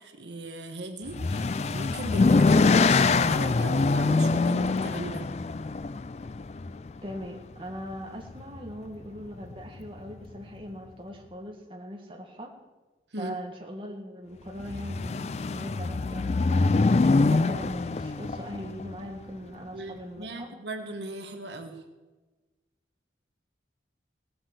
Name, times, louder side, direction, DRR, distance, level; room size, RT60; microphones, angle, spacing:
voice 1, 0.0-5.3 13.1-13.3 19.7-21.8, right 2 dB, 75° right, 6 dB, 1.4 m, -38 dB
sound 1, 1.1-7.2 8.3-8.7 9.0-9.1 9.4-9.5 14.6-19.0, left 3 dB, 35° left, 0.3 m, -24 dB
voice 2, 6.7-12.5 13.2-16.8 17.3-20.5, equal, 30° right, 1 dB, 1.8 m, -41 dB
18.0 x 7.8 x 7.9 m, 1.2 s
head